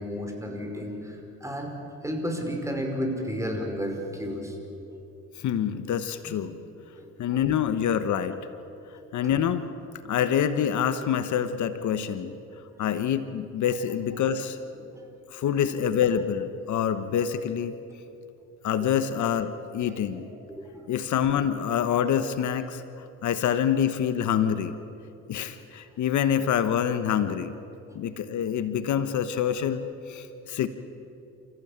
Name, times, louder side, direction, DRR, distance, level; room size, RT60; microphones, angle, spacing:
voice 1, 0.0-1.7 2.0-4.6 6.5-6.6 7.0-7.1 9.2-9.3 14.8-14.9 18.8-18.9 20.1-20.9, equal, 10° right, 2 dB, 5.3 m, -33 dB
voice 2, 5.4-6.5 7.2-8.4 9.1-9.7 10.0-12.3 12.8-14.6 15.3-17.7 18.6-20.3 20.9-24.8 25.3-27.5 27.9-30.7, left 9 dB, 70° left, 11 dB, 1.2 m, -26 dB
29.5 x 15.5 x 8.9 m, 2.8 s
cardioid pair, 90°, 30 cm